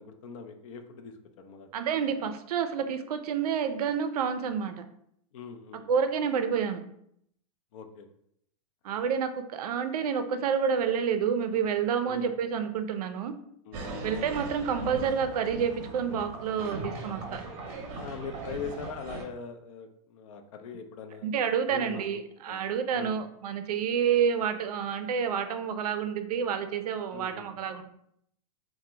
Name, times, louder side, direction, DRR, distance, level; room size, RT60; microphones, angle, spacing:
voice 1, 0.0-1.7 5.3-5.9 7.7-8.1 12.0-12.3 13.6-14.1 18.0-21.3 21.7-22.2 22.5-22.6 22.9-23.2 27.1-27.6, left 5 dB, 60° left, 7 dB, 0.4 m, -42 dB
voice 2, 1.7-4.8 5.9-6.8 8.8-13.3 14.0-17.4 21.2-27.8, right 7 dB, 85° right, 8 dB, 0.4 m, -29 dB
sound 1, 13.7-19.2, right 2 dB, 40° right, 0.6 m, -39 dB
2.8 x 2.1 x 3.3 m, 0.72 s
supercardioid pair, 145°, 19 cm